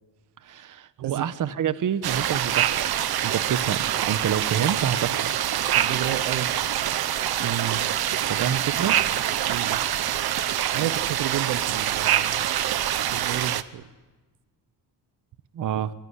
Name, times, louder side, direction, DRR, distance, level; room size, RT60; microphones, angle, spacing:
voice 1, 0.4-5.6 7.4-7.8 8.3-8.9 15.5-15.9, right 9 dB, 50° right, 14 dB, 1.1 m, -28 dB
sound 1, 2.0-13.6, right 11 dB, 65° right, 1.1 m, -25 dB
voice 2, 5.7-6.5 8.4-8.9 9.4-9.8 10.7-12.4 13.1-13.9 15.7-15.8, right 12 dB, 90° right, 15 dB, 0.8 m, -32 dB
24.0 x 21.0 x 10.0 m, 1.2 s
cardioid pair, 135°, 40 cm